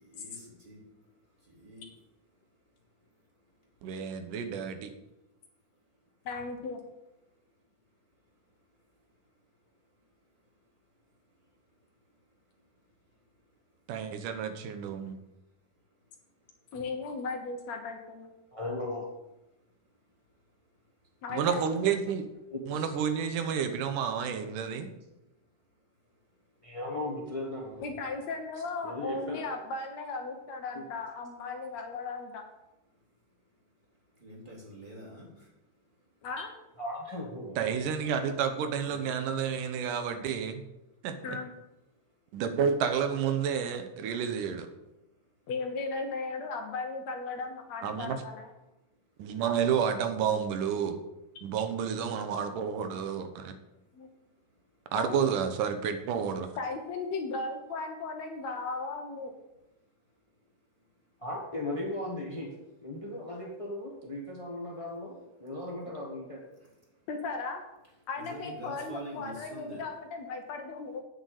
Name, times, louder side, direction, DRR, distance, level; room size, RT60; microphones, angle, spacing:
voice 1, 0.0-1.9 2.3-4.3 5.1-5.2 5.6-6.1 7.2-7.7 8.1-14.1 15.0-15.3 15.7-16.8 19.5-21.2 25.1-26.7 32.9-36.3 38.8-39.1 41.9-42.4 45.0-45.5 48.9-49.3 51.4-51.5 53.7-54.8 59.8-61.1 66.5-67.1 68.2-69.8, right 1 dB, 15° right, -5 dB, 3.3 m, -53 dB
voice 2, 3.8-4.9 13.9-15.2 21.3-22.2 22.7-24.9 37.6-40.6 41.0-41.4 42.3-44.7 47.8-48.2 49.2-51.0 51.4-53.6 54.9-56.5, right 7 dB, 80° right, 8 dB, 2.6 m, -30 dB
voice 3, 6.3-6.8 16.7-18.3 21.2-21.7 27.8-32.4 36.2-36.5 41.2-41.5 45.5-48.5 53.9-54.1 54.9-55.2 56.6-59.3 67.1-67.6 68.1-71.0, left 3 dB, 65° left, 4 dB, 2.2 m, -36 dB
voice 4, 18.5-19.0 22.5-22.9 26.6-27.8 28.8-29.4 30.7-30.8 36.8-37.6 61.2-62.5 62.8-65.1 65.4-66.4, left 1 dB, 35° left, -1 dB, 0.5 m, -37 dB
8.9 x 6.5 x 8.4 m, 0.94 s
omnidirectional pair, 3.7 m